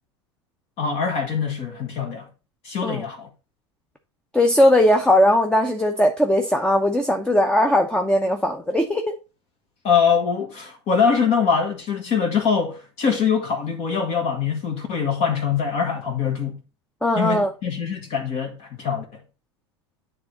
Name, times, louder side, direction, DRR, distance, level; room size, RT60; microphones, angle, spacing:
voice 1, 0.8-2.3 2.6-3.3 9.8-16.6 17.1-19.2, left 6 dB, 45° left, 1.6 m, -23 dB
voice 2, 4.3-9.1 17.0-17.5, left 1 dB, 5° left, 0.8 m, -19 dB
9.5 x 3.5 x 4.1 m
figure-of-eight pair, 80°, 15 cm